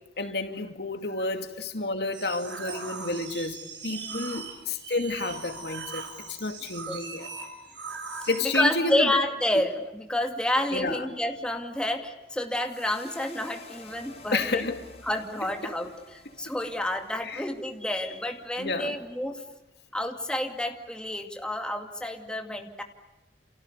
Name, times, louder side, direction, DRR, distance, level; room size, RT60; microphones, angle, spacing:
voice 1, 0.2-3.6 3.8-7.3 8.3-9.1 10.7-11.1 14.3-14.8 17.2-17.5 18.6-19.0, left 2 dB, 65° left, 2.5 m, -30 dB
sound 1, 2.1-8.6, right 4 dB, 75° right, 6.4 m, -40 dB
voice 2, 3.9-4.3 6.9-7.0 8.5-14.6 15.0-15.9 16.4-19.4 19.9-22.8, left 1 dB, 5° left, 2.3 m, -29 dB
sound 2, 12.6-18.9, left 3 dB, 35° left, 6.0 m, -51 dB
29.5 x 29.5 x 6.8 m
head